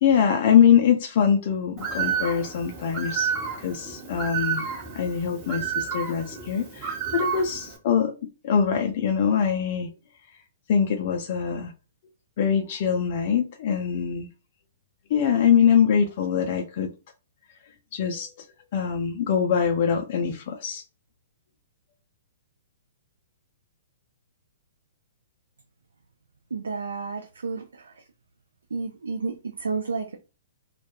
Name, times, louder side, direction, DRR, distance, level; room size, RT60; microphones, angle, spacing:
voice 1, 0.0-3.3 3.6-4.7 4.9-8.1 8.4-9.9 10.7-11.7 12.4-14.3 15.1-16.9 17.9-18.5 18.7-20.8, left 8 dB, 50° left, 0.4 m, -23 dB
Bird, 1.8-7.8, right 7 dB, 30° right, 0.8 m, -30 dB
voice 2, 26.5-28.0 28.7-30.2, right 4 dB, 80° right, 0.3 m, -31 dB
2.3 x 2.1 x 2.8 m
hypercardioid pair, 120°, 0 cm